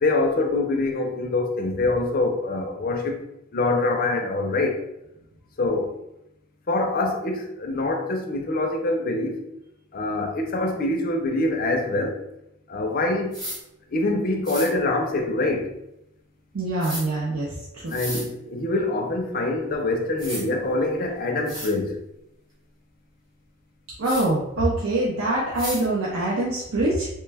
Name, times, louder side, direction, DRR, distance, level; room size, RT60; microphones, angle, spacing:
voice 1, 0.0-3.2 3.5-4.8 5.6-6.0 6.7-9.4 9.9-12.2 12.7-13.4 13.9-15.7 17.9-22.0, left 2 dB, 40° left, 0.4 m, -25 dB
sound 1, 13.3-13.6 14.4-14.7 16.8-17.0 17.9-18.2 19.7-19.8 20.2-20.4 21.1-21.2 21.5-21.7 24.0-24.2 25.6-25.8, equal, 20° right, 0.9 m, -33 dB
voice 2, 16.5-17.9 24.0-27.1, right 2 dB, 70° right, 0.6 m, -24 dB
3.1 x 2.2 x 3.3 m
head